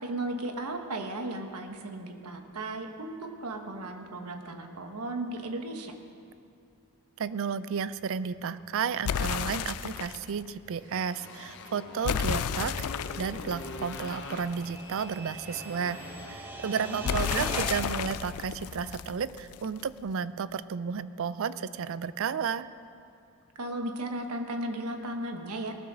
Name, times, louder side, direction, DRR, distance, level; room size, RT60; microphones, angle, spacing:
voice 1, 0.0-5.9 16.6-17.5 23.6-25.7, right 1 dB, 90° right, 5 dB, 1.2 m, -35 dB
voice 2, 7.2-22.7, right 6 dB, 60° right, 16 dB, 0.4 m, -33 dB
sound 1, 7.9-18.0, right 1 dB, 10° right, 1.7 m, -44 dB
sound 2, 9.0-10.3 12.0-14.8 17.0-19.8, left 8 dB, 75° left, 0.4 m, -32 dB
Motorcycle, 10.7-18.1, left 3 dB, 55° left, 0.9 m, -45 dB
19.0 x 7.2 x 6.2 m, 2.5 s
head